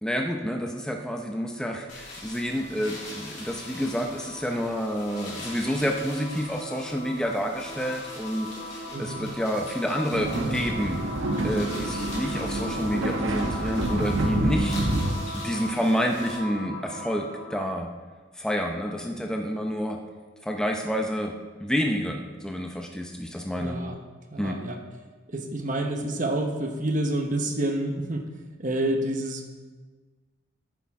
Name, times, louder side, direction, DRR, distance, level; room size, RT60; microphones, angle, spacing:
voice 1, 0.0-8.5 9.0-11.0 11.4-14.8 15.3-17.9 18.4-20.0 20.4-21.3 21.6-23.8 24.4-24.6, equal, 5° left, 2 dB, 0.6 m, -29 dB
sound 1, 1.2-17.9, equal, 55° left, 2.0 m, -40 dB
sound 2, 1.9-16.4, left 2 dB, 35° left, 3.4 m, -44 dB
voice 2, 8.9-9.3 23.6-24.0 24.3-24.8 25.3-28.2 28.6-29.5, right 1 dB, 40° right, 4 dB, 1.0 m, -28 dB
sound 3, 10.1-15.1, right 1 dB, 90° right, 1.0 m, -28 dB
10.0 x 9.5 x 3.6 m, 1.4 s
head